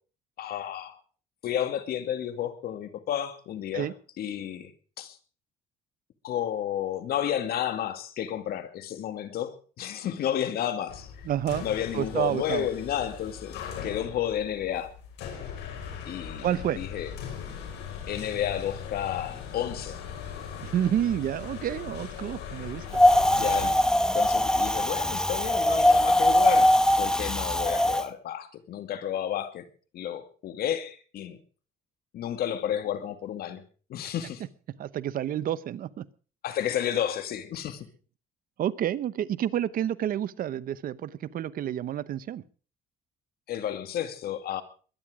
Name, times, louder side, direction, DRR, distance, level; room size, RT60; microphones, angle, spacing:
voice 1, 0.4-1.0 1.4-3.9 4.2-4.7 5.0-5.2 6.2-11.3 11.6-14.9 16.1-16.5 16.8-17.1 18.1-20.0 23.2-23.8 24.1-26.7 27.0-29.7 29.9-31.4 32.1-33.6 33.9-34.4 36.4-37.9 43.5-44.6, left 10 dB, 65° left, 10 dB, 2.2 m, -31 dB
sound 1, 10.9-23.7, left 7 dB, 85° left, 5.5 m, -40 dB
voice 2, 11.2-11.6 11.9-12.7 16.4-16.8 20.6-22.9 34.8-36.0 38.6-42.4, right 11 dB, 60° right, 17 dB, 0.9 m, -29 dB
Wind, 22.9-28.0, left 1 dB, 5° left, 0.9 m, -22 dB
22.0 x 10.5 x 5.0 m, 0.40 s
cardioid pair, 110°, 17 cm